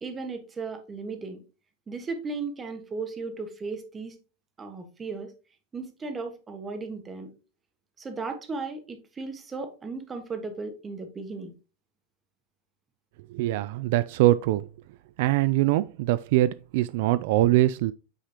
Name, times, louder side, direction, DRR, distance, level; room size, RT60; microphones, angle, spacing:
voice 1, 0.0-1.4 1.9-4.2 4.6-5.3 5.7-7.3 8.0-11.5, right 4 dB, 15° right, 1.4 m, -36 dB
voice 2, 13.3-14.7 15.2-17.9, right 16 dB, 60° right, 0.3 m, -23 dB
9.0 x 5.0 x 2.9 m
supercardioid pair, 150°, 0 cm